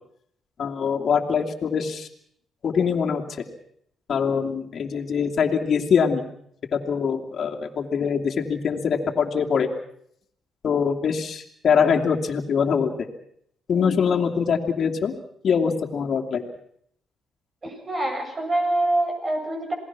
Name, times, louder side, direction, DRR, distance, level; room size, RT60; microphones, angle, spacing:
voice 1, 0.6-2.1 2.6-3.4 4.1-6.2 6.7-9.7 10.6-12.9 13.7-15.1 15.4-16.4, left 6 dB, 55° left, 1 dB, 2.8 m, -23 dB
voice 2, 17.6-19.7, right 1 dB, 30° right, 4 dB, 7.7 m, -25 dB
27.5 x 19.5 x 6.1 m, 0.69 s
cardioid pair, 90°, 0 cm